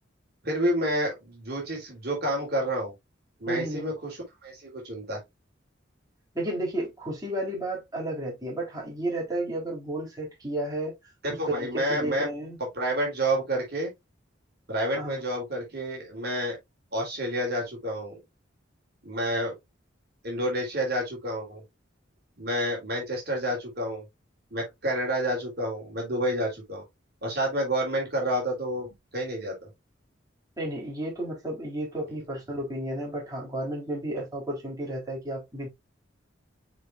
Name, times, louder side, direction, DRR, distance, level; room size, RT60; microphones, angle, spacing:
voice 1, 0.4-2.9 3.4-5.2 11.4-12.3 12.7-13.9 14.7-16.6 16.9-18.2 19.0-19.5 20.2-21.6 22.4-24.0 24.5-26.8 27.2-29.5, right 1 dB, 55° right, 3.5 m, -29 dB
voice 2, 3.5-3.9 6.3-10.9 11.5-12.6 14.9-15.2 30.6-35.7, right 1 dB, 20° right, 4.2 m, -32 dB
8.1 x 4.8 x 2.5 m
head